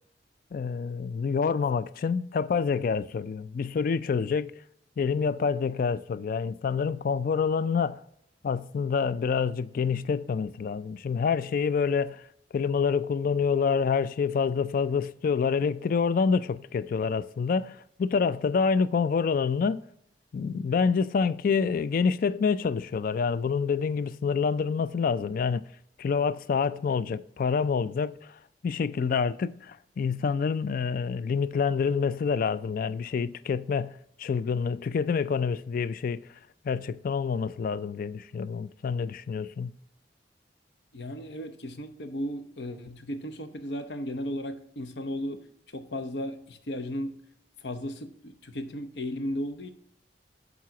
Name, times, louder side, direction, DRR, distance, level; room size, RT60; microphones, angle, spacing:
voice 1, 0.5-4.6 5.0-8.0 8.4-12.3 12.5-19.8 20.3-25.6 26.0-36.2 36.6-39.7, left 5 dB, 50° left, 0.3 m, -27 dB
voice 2, 40.9-45.5 45.7-47.2 47.6-49.7, left 1 dB, 70° left, 0.8 m, -35 dB
7.5 x 4.1 x 5.8 m
head